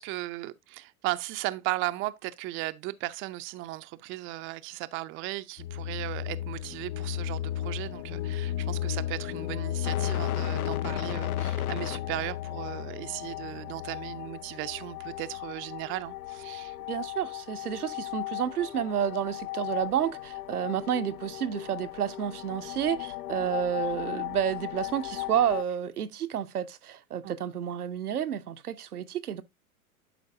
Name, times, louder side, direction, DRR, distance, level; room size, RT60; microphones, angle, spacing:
voice 1, 0.0-16.8 23.4-23.5 27.2-27.3, right 18 dB, 30° right, 0.5 m, -36 dB
sound 1, 5.6-15.4, left 11 dB, 45° left, 0.5 m, -33 dB
sound 2, 9.8-25.6, left 15 dB, 80° left, 0.7 m, -38 dB
voice 2, 16.9-29.4, right 9 dB, 85° right, 0.8 m, -30 dB
11.0 x 4.6 x 2.6 m
hypercardioid pair, 100°, 44 cm